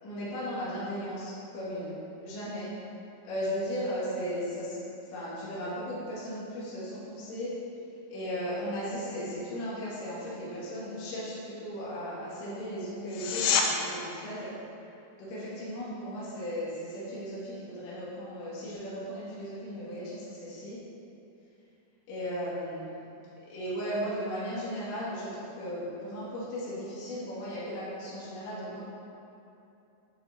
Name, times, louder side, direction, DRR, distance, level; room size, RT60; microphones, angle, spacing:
voice 1, 0.0-1.9 2.2-2.7 3.2-4.8 5.1-7.5 8.1-14.5 15.2-20.8 22.1-23.0 23.5-28.8, equal, 60° left, -10 dB, 2.6 m, -36 dB
sound 1, 13.1-13.7 25.0-25.1, left 6 dB, 85° left, 3.0 m, -26 dB
7.5 x 6.0 x 3.2 m, 2.8 s
omnidirectional pair, 5.6 m